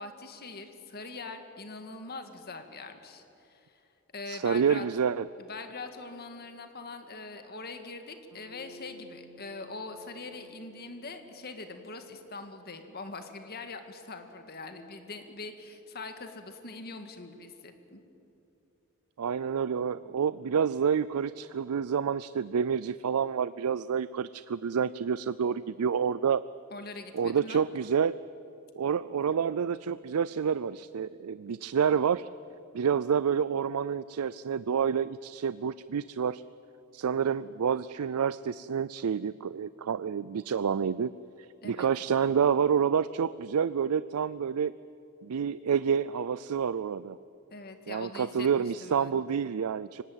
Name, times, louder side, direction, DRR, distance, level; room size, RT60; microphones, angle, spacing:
voice 1, 0.0-3.2 3.5-3.6 4.1-4.8 5.4-18.0 26.7-27.6 41.6-41.9 47.5-49.2, left 3 dB, 45° left, 7 dB, 2.0 m, -42 dB
voice 2, 4.3-5.3 19.2-26.4 27.1-28.1 28.8-32.3 32.7-36.4 36.9-41.1 41.6-44.7 45.2-47.2 47.9-50.0, right 7 dB, 90° right, 16 dB, 0.4 m, -28 dB
Bass guitar, 8.3-12.7, left 1 dB, 60° left, 3.7 m, -55 dB
24.5 x 19.0 x 9.1 m, 2.9 s
head